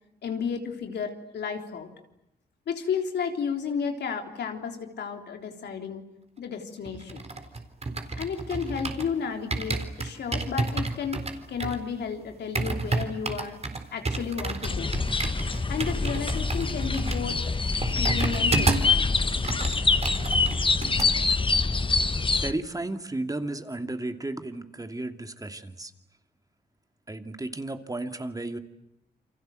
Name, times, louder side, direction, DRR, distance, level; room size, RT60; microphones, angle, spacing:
voice 1, 0.2-1.9 2.7-6.0 6.4-7.2 8.2-13.6 13.9-14.9 15.7-17.6 17.9-19.1, left 6 dB, 85° left, 4 dB, 3.6 m, -32 dB
sound 1, 6.9-9.1 9.5-19.0 19.3-21.1 21.4-21.7, right 3 dB, 40° right, 4.0 m, -31 dB
sound 2, 14.6-22.5, left 4 dB, 30° left, 1.4 m, -25 dB
voice 2, 22.4-25.9 27.1-28.6, right 2 dB, 20° right, 7 dB, 2.6 m, -33 dB
29.0 x 24.5 x 7.8 m, 0.81 s
cardioid pair, 70°, 17 cm